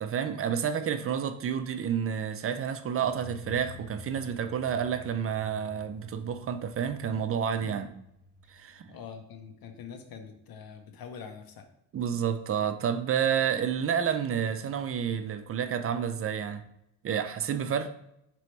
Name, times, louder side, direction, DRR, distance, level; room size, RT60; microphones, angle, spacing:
voice 1, 0.0-7.9 8.5-8.9 11.9-16.6 17.0-17.9, right 8 dB, 35° right, 9 dB, 0.4 m, -30 dB
sound 1, 3.0-9.6, left 4 dB, 20° right, 1.0 m, -50 dB
voice 2, 8.9-11.7, left 6 dB, 60° left, 6 dB, 0.8 m, -44 dB
4.1 x 3.0 x 3.2 m, 0.80 s
cardioid pair, 100°, 40 cm